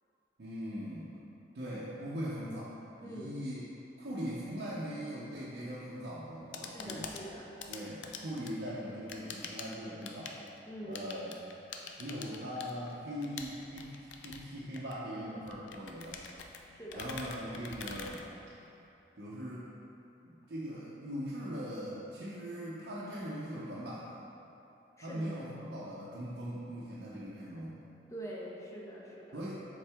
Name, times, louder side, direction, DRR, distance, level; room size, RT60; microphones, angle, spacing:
voice 1, 0.4-1.2 1.5-2.7 3.0-3.7 4.0-7.1 7.7-10.4 10.8-11.4 12.0-16.2 16.9-18.2 19.2-19.7 20.2-24.2 25.0-27.8 29.3-29.5, equal, 70° right, -8 dB, 0.7 m, -40 dB
voice 2, 3.0-3.4 6.6-7.5 10.7-11.1 16.8-17.1 25.0-25.2 28.1-29.4, right 1 dB, 15° left, -4 dB, 0.6 m, -44 dB
sound 1, 6.3-18.9, left 5 dB, 90° left, 0.5 m, -46 dB
7.3 x 3.9 x 3.5 m, 2.9 s
head